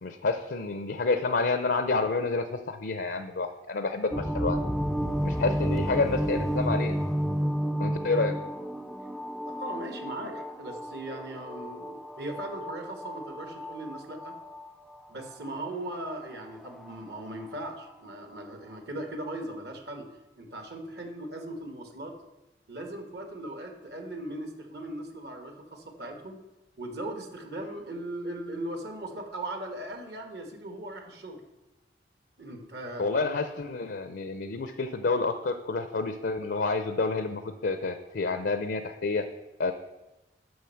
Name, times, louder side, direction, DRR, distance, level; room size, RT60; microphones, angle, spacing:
voice 1, 0.0-4.6 5.2-7.0 7.8-8.3 33.0-39.3 39.6-39.7, left 3 dB, 75° left, 8 dB, 0.6 m, -29 dB
sound 1, 4.1-17.5, equal, ahead, 0.3 m, -32 dB
voice 2, 9.5-14.3 15.1-20.1 20.4-22.2 22.7-26.4 26.8-31.4 32.4-33.1, right 1 dB, 70° right, 4 dB, 1.4 m, -38 dB
9.5 x 6.4 x 5.8 m, 1.0 s
head